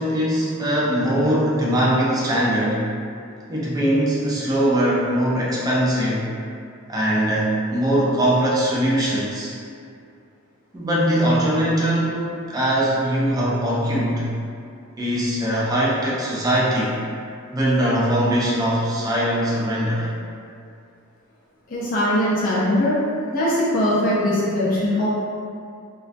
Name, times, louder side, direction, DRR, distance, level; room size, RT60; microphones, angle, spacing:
voice 1, 0.0-2.9 3.5-6.3 6.9-9.5 10.7-14.3 15.0-17.0 17.5-20.1, right 1 dB, 20° right, -6 dB, 0.4 m, -21 dB
voice 2, 21.7-23.0 23.3-25.1, left 1 dB, 40° left, -9 dB, 0.5 m, -21 dB
2.3 x 2.2 x 2.4 m, 2.3 s
head